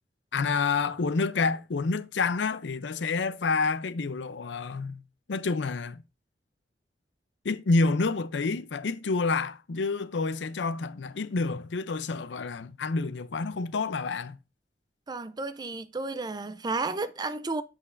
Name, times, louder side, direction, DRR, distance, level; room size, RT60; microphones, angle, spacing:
voice 1, 0.3-5.0 5.3-6.0 7.4-14.4, left 4 dB, 90° left, 0.6 m, -28 dB
voice 2, 15.1-17.6, right 3 dB, 25° right, 0.4 m, -32 dB
7.7 x 6.2 x 2.5 m
head